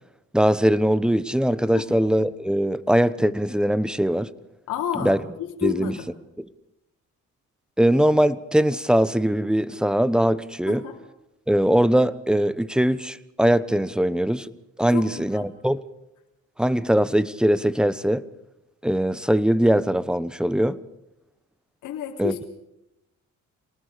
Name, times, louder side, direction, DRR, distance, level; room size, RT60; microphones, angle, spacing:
voice 1, 0.3-4.3 4.9-5.2 5.6-5.9 7.8-10.9 11.5-14.5 14.8-15.8 16.6-18.3 18.8-20.8 22.2-22.3, equal, 5° right, 1.0 m, -21 dB
voice 2, 4.7-6.0 10.7-10.9 14.9-15.5 21.8-22.5, left 9 dB, 90° left, 3.2 m, -30 dB
28.0 x 19.0 x 5.1 m
cardioid pair, 90°, 30 cm